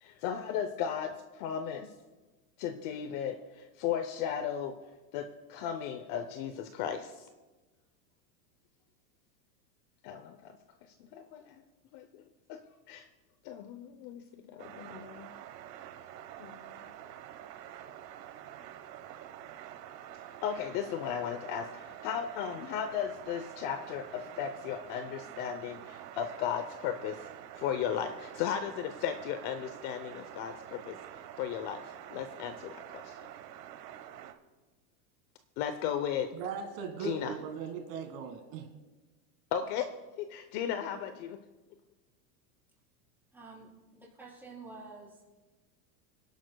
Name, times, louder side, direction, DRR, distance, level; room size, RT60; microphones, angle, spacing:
voice 1, 0.0-1.9 2.6-4.7 5.1-7.3 10.0-10.6 11.1-11.6 11.9-12.2 12.5-12.6 12.9-13.1 13.4-15.3 16.4-16.9 20.4-27.3 27.5-31.0 31.4-33.2 35.6-36.3 37.0-37.4 39.5-39.9 40.2-41.4, left 8 dB, 40° left, 9 dB, 0.7 m, -36 dB
sound 1, 14.6-34.3, right 11 dB, 80° right, 1.2 m, -47 dB
voice 2, 36.3-38.7, right 7 dB, 50° right, 4 dB, 1.8 m, -39 dB
voice 3, 43.3-45.2, right 3 dB, 5° right, -7 dB, 4.4 m, -49 dB
27.0 x 11.5 x 2.3 m, 1.2 s
supercardioid pair, 145°, 49 cm